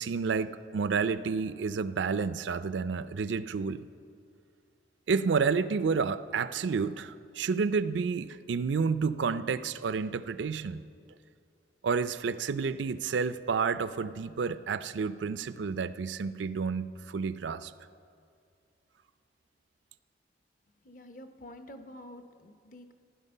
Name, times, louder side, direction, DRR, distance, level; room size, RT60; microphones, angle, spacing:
voice 1, 0.0-3.8 5.1-10.8 11.8-17.7, right 5 dB, 90° right, 14 dB, 0.4 m, -30 dB
voice 2, 20.8-22.9, left 1 dB, 45° left, 7 dB, 0.8 m, -48 dB
14.5 x 11.5 x 5.5 m, 2.4 s
head